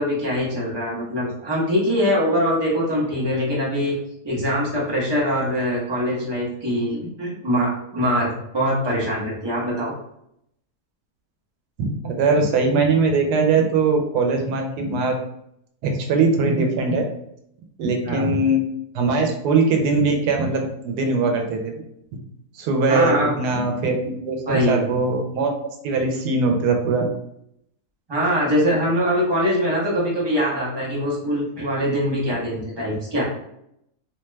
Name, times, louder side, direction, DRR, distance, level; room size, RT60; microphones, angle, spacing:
voice 1, 0.0-4.0 4.2-9.9 18.0-18.3 22.9-23.3 24.5-24.9 28.1-33.2, equal, 25° right, -5 dB, 0.6 m, -23 dB
voice 2, 11.8-15.2 15.8-17.1 17.8-18.6 18.9-21.8 22.6-25.5 25.8-27.1, right 3 dB, 90° right, 3 dB, 1.2 m, -21 dB
2.8 x 2.2 x 3.1 m, 0.75 s
omnidirectional pair, 1.7 m